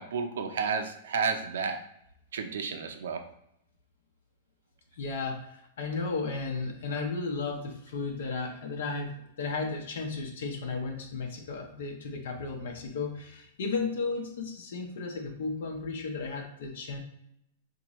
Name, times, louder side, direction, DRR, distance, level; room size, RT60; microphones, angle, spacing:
voice 1, 0.0-1.8 2.3-3.2, right 5 dB, 90° right, 6 dB, 0.5 m, -31 dB
voice 2, 4.9-9.1 9.4-17.0, left 4 dB, 75° left, 2 dB, 0.8 m, -34 dB
4.5 x 2.6 x 3.0 m, 0.75 s
supercardioid pair, 160°, 0 cm